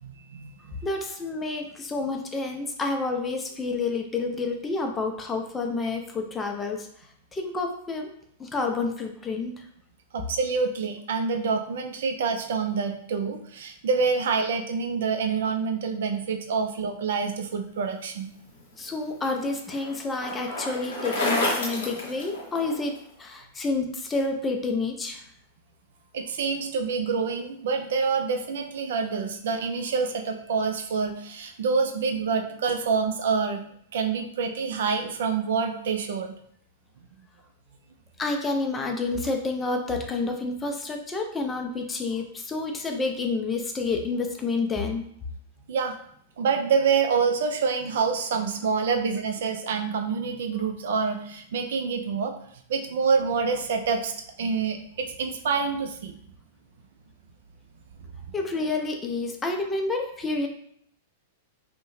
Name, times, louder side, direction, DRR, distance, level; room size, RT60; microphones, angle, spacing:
voice 1, 0.0-0.8 10.1-18.3 26.1-33.6 33.9-36.3 45.7-46.0 46.4-52.3 52.7-54.1 54.4-56.1, right 5 dB, 60° right, 5 dB, 0.3 m, -27 dB
voice 2, 0.8-6.9 7.3-8.1 8.4-9.5 18.8-22.9 23.2-25.2 38.2-45.0 58.3-60.5, left 3 dB, 15° left, 3 dB, 0.4 m, -29 dB
Bicycle, 18.6-23.0, left 1 dB, 65° left, 0.8 m, -31 dB
2.6 x 2.1 x 3.0 m, 0.66 s
figure-of-eight pair, 95°, 0 cm